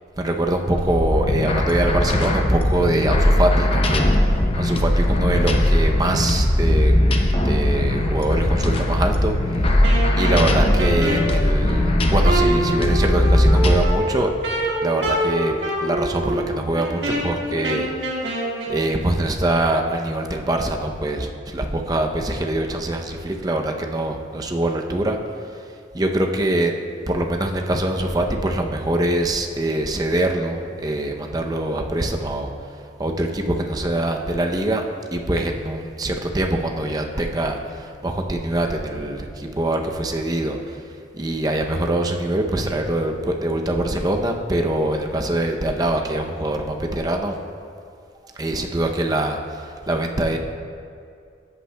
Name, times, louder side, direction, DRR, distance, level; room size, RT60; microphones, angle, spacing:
voice 1, 0.2-6.9 7.4-9.8 10.2-14.3 14.8-15.5 15.8-18.4 18.7-25.2 25.5-25.7 25.9-26.7 27.1-32.5 33.0-34.8 35.1-47.4 48.2-50.4, right 1 dB, 20° right, 3 dB, 0.5 m, -24 dB
sound 1, 0.8-13.8, left 1 dB, 30° left, 0.6 m, -19 dB
Wind instrument woodwind instrument, 9.8-18.8, right 1 dB, 80° right, 1.6 m, -26 dB
13.5 x 8.3 x 2.2 m, 2.3 s
head